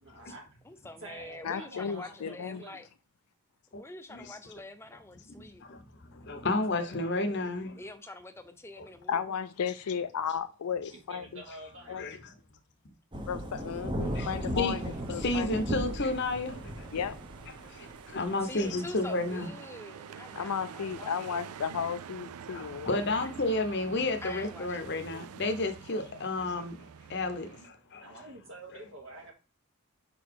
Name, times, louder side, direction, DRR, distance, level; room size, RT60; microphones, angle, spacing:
voice 1, 0.0-0.5 1.0-2.8 5.9-6.5 10.9-12.1 28.0-29.3, right 1 dB, 55° right, 1.2 m, -48 dB
voice 2, 0.6-2.9 3.7-5.6 7.8-9.4 18.4-21.7 23.2-23.3 24.2-25.1, left 2 dB, 10° left, 0.5 m, -46 dB
voice 3, 1.4-2.6 9.1-11.4 11.9-12.0 13.3-15.5 16.9-17.2 20.4-23.1, left 7 dB, 85° left, 0.4 m, -34 dB
voice 4, 5.4-7.8 12.0-12.3 13.1-13.3 13.6-13.7 14.1-14.8 15.2-16.9 17.6-19.5 22.5-28.1, left 2 dB, 50° left, 0.8 m, -32 dB
Thunder / Rain, 13.1-19.5, right 1 dB, 20° right, 0.8 m, -36 dB
sound 1, 14.0-27.7, right 7 dB, 80° right, 0.4 m, -48 dB
5.2 x 4.0 x 4.6 m
head